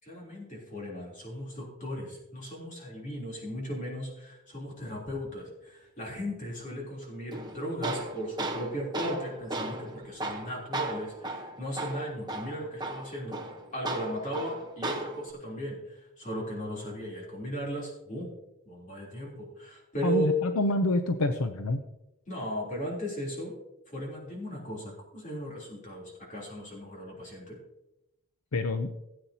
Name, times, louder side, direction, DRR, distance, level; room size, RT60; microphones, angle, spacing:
voice 1, 0.0-13.4 13.7-18.3 18.6-20.3 22.3-23.5 23.9-27.6, equal, 35° left, -2 dB, 3.4 m, -36 dB
Tools, 7.3-15.3, right 2 dB, 20° right, 1.0 m, -36 dB
voice 2, 20.0-21.8 28.5-28.9, left 2 dB, 80° left, 8 dB, 0.6 m, -27 dB
17.0 x 8.6 x 2.8 m, 0.91 s
head